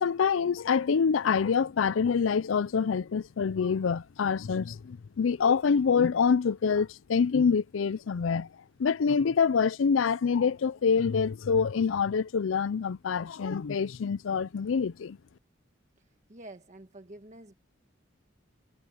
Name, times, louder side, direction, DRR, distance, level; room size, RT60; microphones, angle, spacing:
voice 1, 0.0-8.5 8.8-15.2, left 6 dB, 90° left, 0.5 m, -26 dB
voice 2, 16.0-17.5, right 1 dB, 40° right, 1.5 m, -48 dB
head